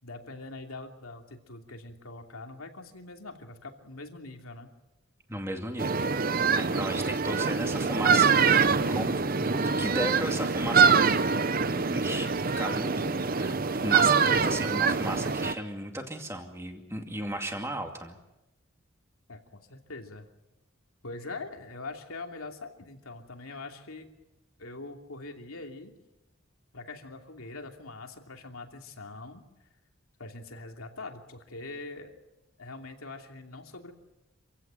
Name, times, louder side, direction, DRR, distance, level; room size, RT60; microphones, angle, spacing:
voice 1, 0.0-4.7 19.3-20.3 21.0-24.1 24.6-25.9 26.7-29.4 30.2-32.1 32.6-33.9, left 3 dB, 90° left, 3 dB, 2.9 m, -43 dB
voice 2, 5.3-6.1 6.5-10.9 11.7-12.3 12.6-13.6 13.8-18.2, right 1 dB, 10° right, 4 dB, 2.4 m, -35 dB
sound 1, 5.8-15.5, right 5 dB, 45° right, 0.8 m, -24 dB
27.0 x 16.0 x 9.1 m, 0.98 s
head